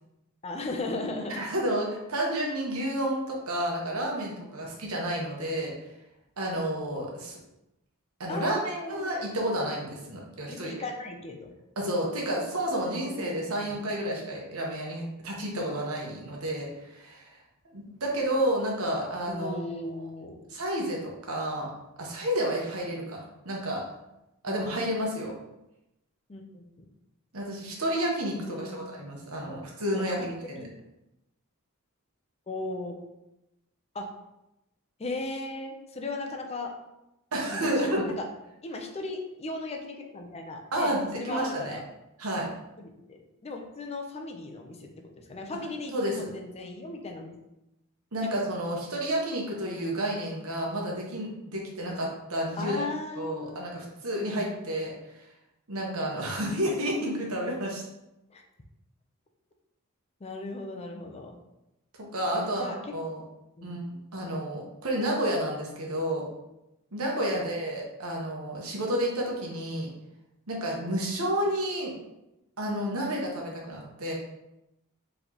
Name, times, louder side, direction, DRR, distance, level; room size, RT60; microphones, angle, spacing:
voice 1, 0.4-1.4 4.6-4.7 8.3-9.1 10.5-11.5 12.2-12.3 12.8-13.8 19.3-20.4 24.5-24.6 26.3-26.8 28.4-28.9 29.4-29.5 29.9-30.3 30.6-30.7 32.5-33.0 33.9-34.1 35.0-36.7 37.5-38.2 38.6-41.8 42.8-44.9 45.2-47.3 52.6-53.7 58.3-58.4 60.2-61.4 62.4-62.9 63.6-63.8 67.3-67.5, left 2 dB, 30° left, 2 dB, 0.5 m, -37 dB
voice 2, 1.4-5.7 6.4-7.4 8.2-10.7 11.8-17.4 17.7-19.6 20.5-21.7 22.0-23.8 24.4-25.3 27.3-30.6 37.3-38.1 40.7-41.8 42.2-42.5 45.9-46.3 48.1-52.8 53.2-54.9 55.7-57.8 62.1-62.7 62.9-63.2 63.6-63.8 64.1-66.2 66.9-69.9 70.5-71.9 72.6-74.1, right 1 dB, 75° right, -2 dB, 1.1 m, -30 dB
4.2 x 3.4 x 2.9 m, 0.91 s
head